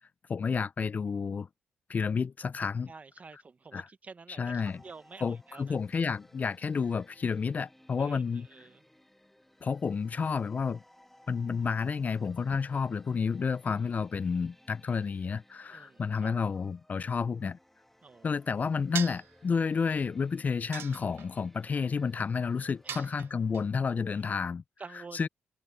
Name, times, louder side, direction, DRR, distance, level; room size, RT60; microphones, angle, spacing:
voice 1, 0.3-1.5 1.9-2.9 3.7-3.9 4.4-4.8 5.2-8.5 9.6-10.8 11.3-17.6 18.2-24.6 25.1-25.3, left 5 dB, 45° left, 0.4 m, -30 dB
voice 2, 2.9-5.8 8.0-8.8 15.7-16.3 18.0-18.3 22.8-23.1 24.8-25.3, right 4 dB, 40° right, 1.0 m, -49 dB
sound 1, 4.6-24.3, left 1 dB, 5° left, 1.6 m, -61 dB
sound 2, 19.0-19.4 20.7-21.4 22.9-23.6, right 10 dB, 75° right, 0.4 m, -39 dB
cardioid pair, 65°, 4 cm